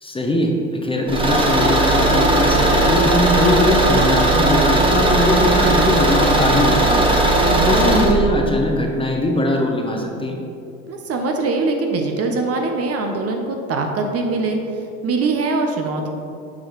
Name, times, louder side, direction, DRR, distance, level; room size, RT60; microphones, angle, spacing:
voice 1, 0.0-7.1 7.6-10.4, left 1 dB, 15° left, 1 dB, 0.9 m, -21 dB
Car / Engine, 1.1-8.1, right 1 dB, 15° right, 1.2 m, -17 dB
voice 2, 7.5-8.0 10.9-14.6 15.0-16.1, right 3 dB, 40° right, 4 dB, 0.9 m, -22 dB
7.0 x 4.7 x 4.6 m, 2.6 s
supercardioid pair, 90°, 37 cm